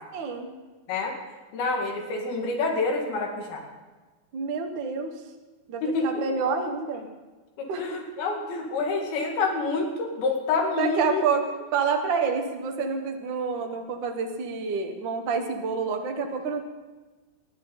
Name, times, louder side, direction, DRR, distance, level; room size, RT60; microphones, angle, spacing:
voice 1, 0.1-0.5 4.3-5.1 5.7-7.1 7.7-7.9 10.8-11.5 11.7-16.6, right 5 dB, 65° right, 4 dB, 1.1 m, -28 dB
voice 2, 1.5-3.6 5.8-6.1 7.6-11.2, left 3 dB, 85° left, 1 dB, 3.9 m, -27 dB
24.5 x 11.0 x 3.9 m, 1.3 s
omnidirectional pair, 4.2 m